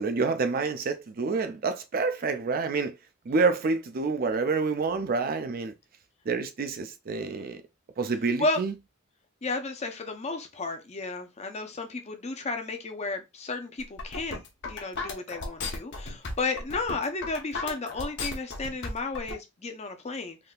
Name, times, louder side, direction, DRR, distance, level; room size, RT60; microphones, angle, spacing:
voice 1, 0.0-3.0 3.3-5.7 6.3-7.6 8.0-8.7, right 4 dB, 45° right, 0.5 m, -28 dB
voice 2, 9.4-14.4 14.7-20.4, left 3 dB, 30° left, 0.6 m, -33 dB
sound 1, 13.8-19.3, left 3 dB, 60° left, 0.9 m, -35 dB
3.6 x 2.7 x 2.3 m
head